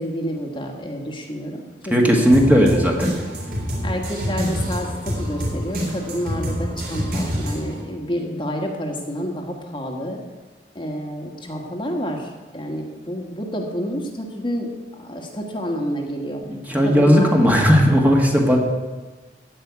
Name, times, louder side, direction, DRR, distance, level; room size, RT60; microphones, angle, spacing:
voice 1, 0.0-2.4 2.7-2.8 3.8-10.2 10.7-16.4 16.8-17.4, equal, 30° left, 1 dB, 1.5 m, -29 dB
voice 2, 1.9-3.1 16.5-18.6, equal, 10° right, 0 dB, 1.7 m, -16 dB
sound 1, 2.3-7.8, equal, 55° right, 3.9 m, -27 dB
16.0 x 5.4 x 9.4 m, 1.3 s
head